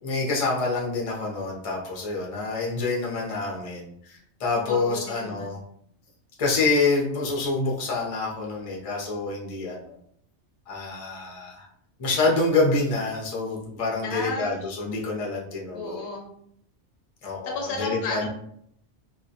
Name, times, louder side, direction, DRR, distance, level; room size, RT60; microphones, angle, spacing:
voice 1, 0.0-5.6 6.4-9.8 10.7-11.7 12.0-16.0 17.2-18.3, left 3 dB, 40° left, -3 dB, 0.5 m, -27 dB
voice 2, 4.7-5.6 14.0-14.6 15.7-16.3 17.4-18.3, left 3 dB, 70° left, 1 dB, 0.8 m, -33 dB
2.1 x 2.1 x 2.7 m, 0.69 s
omnidirectional pair, 1.2 m